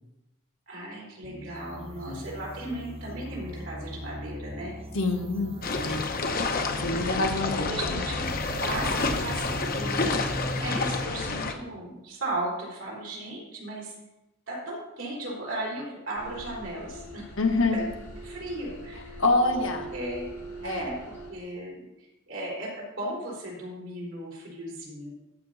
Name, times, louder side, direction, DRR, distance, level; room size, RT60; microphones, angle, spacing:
voice 1, 0.7-4.7 7.3-8.3 8.6-10.1 10.6-14.0 14.5-17.3 17.7-17.8 18.2-19.2 19.5-19.7 19.9-20.3 20.6-25.1, right 1 dB, 60° right, -4 dB, 3.9 m, -36 dB
sound 1, 1.2-11.1, equal, 30° right, 0.7 m, -39 dB
voice 2, 1.8-2.2 4.9-5.6 5.8-6.1 6.8-7.8 17.4-17.8 19.2-19.8 20.6-20.9, left 2 dB, 60° left, 4 dB, 1.2 m, -26 dB
sound 2, 5.6-11.5, left 3 dB, 45° left, 0.8 m, -29 dB
sound 3, 16.2-21.3, right 1 dB, 85° left, 2.4 m, -42 dB
14.0 x 5.9 x 4.0 m, 1.0 s
head